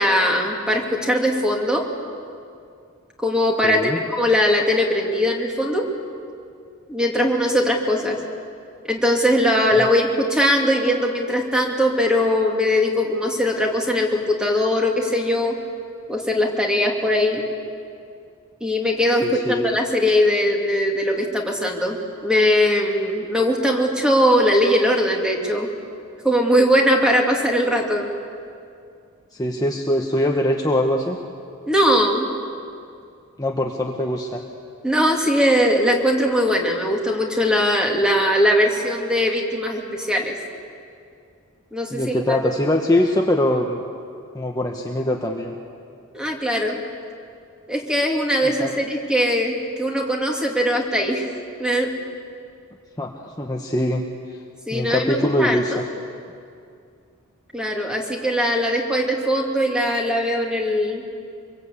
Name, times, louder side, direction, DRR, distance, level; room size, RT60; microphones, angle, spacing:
voice 1, 0.0-1.9 3.2-5.9 6.9-8.2 8.9-15.6 16.1-17.4 18.6-25.7 26.2-28.1 31.6-32.3 34.8-40.3 41.7-42.4 46.1-46.8 47.7-51.2 51.6-51.9 54.7-55.8 57.5-61.0, equal, 5° right, 1 dB, 2.7 m, -20 dB
voice 2, 3.6-4.0 9.8-9.9 19.2-19.7 29.3-31.2 33.4-34.4 41.9-43.8 44.3-45.6 48.6-48.7 53.0-54.0 54.7-55.8, left 1 dB, 15° left, 1 dB, 1.2 m, -22 dB
25.5 x 23.0 x 8.4 m, 2.4 s
head